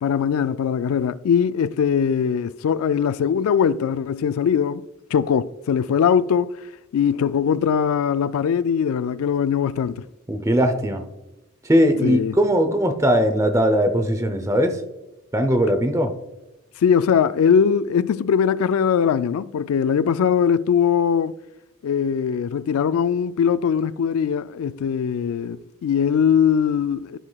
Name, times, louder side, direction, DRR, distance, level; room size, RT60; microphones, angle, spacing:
voice 1, 0.0-4.8 5.1-6.5 6.9-10.0 12.0-12.4 16.8-21.4 21.8-27.2, left 7 dB, 85° left, 0.3 m, -21 dB
voice 2, 10.3-11.0 11.7-14.8 15.3-16.1, equal, 15° right, 0.6 m, -19 dB
13.0 x 4.8 x 2.3 m
head